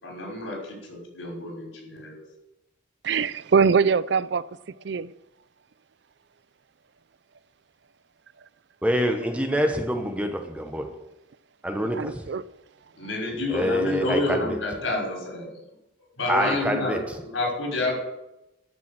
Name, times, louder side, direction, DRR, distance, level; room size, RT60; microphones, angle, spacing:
voice 1, 0.0-2.2 13.0-15.5 16.2-17.0 17.3-17.9, left 2 dB, 80° left, 5.8 m, -29 dB
voice 2, 3.0-4.4 4.8-5.1 12.0-12.4, right 5 dB, 60° right, 0.4 m, -22 dB
voice 3, 8.8-11.1 11.6-12.3 13.5-14.6 16.3-17.2, equal, 5° right, 1.0 m, -26 dB
12.5 x 7.0 x 7.5 m
head